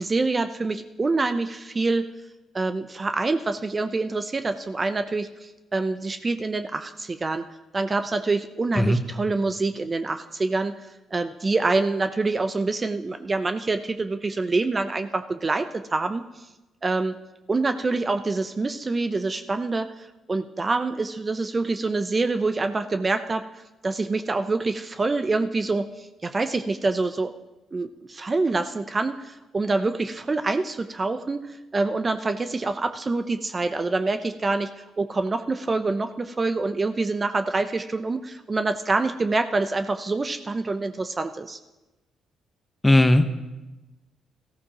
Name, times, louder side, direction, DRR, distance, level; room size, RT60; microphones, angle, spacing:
voice 1, 0.0-2.1 2.5-7.4 7.7-16.4 16.8-17.1 17.5-27.3 27.7-41.6, right 3 dB, 30° right, 9 dB, 0.6 m, -26 dB
voice 2, 42.8-43.3, left 1 dB, 15° left, 8 dB, 1.0 m, -17 dB
18.5 x 14.0 x 2.9 m, 1.1 s
cardioid pair, 90°, 0 cm